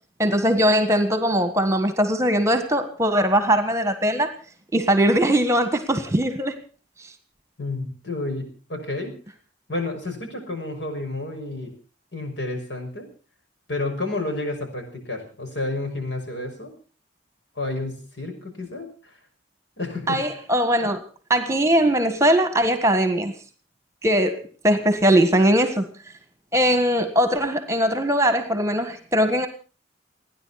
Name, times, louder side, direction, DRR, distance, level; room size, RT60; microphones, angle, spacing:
voice 1, 0.2-4.3 4.7-6.6 20.1-21.0 21.3-23.3 24.0-25.9 26.5-29.5, equal, 15° right, 1.6 m, -20 dB
voice 2, 7.6-9.1 9.7-11.7 12.1-13.1 13.7-16.7 17.6-19.2 19.8-20.2, left 2 dB, 70° left, 5.8 m, -30 dB
30.0 x 10.5 x 4.2 m
head